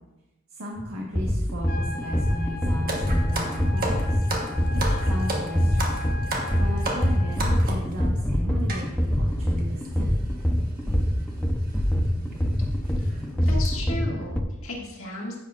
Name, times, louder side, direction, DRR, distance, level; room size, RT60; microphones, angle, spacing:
voice 1, 0.5-4.2 4.7-6.2 6.5-10.2, equal, 85° right, -3 dB, 1.5 m, -36 dB
sound 1, 0.8-14.4, equal, 5° left, 0.6 m, -24 dB
sound 2, 1.7-7.7, left 4 dB, 45° left, 0.7 m, -39 dB
sound 3, 2.9-7.9 8.7-8.9 9.6-9.7 9.8-10.0 11.0-11.2 11.7-11.8 12.3-12.4 12.9-13.1 13.5-13.7, right 2 dB, 45° right, 1.4 m, -31 dB
voice 2, 13.0-15.4, left 1 dB, 70° left, -3 dB, 2.0 m, -35 dB
10.0 x 8.7 x 2.5 m, 0.98 s
head